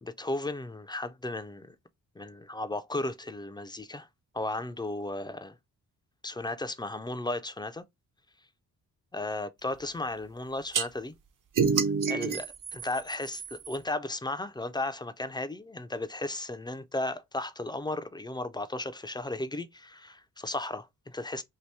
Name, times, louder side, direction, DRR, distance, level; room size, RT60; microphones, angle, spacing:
voice 1, 0.0-1.8 2.2-4.1 4.3-5.6 6.2-7.8 9.1-11.1 12.1-21.4, left 2 dB, 10° left, 0.3 m, -35 dB
sound 1, 10.7-10.9 11.6-13.8, right 6 dB, 50° right, 0.5 m, -28 dB
2.8 x 2.6 x 3.3 m
cardioid pair, 75°, 40 cm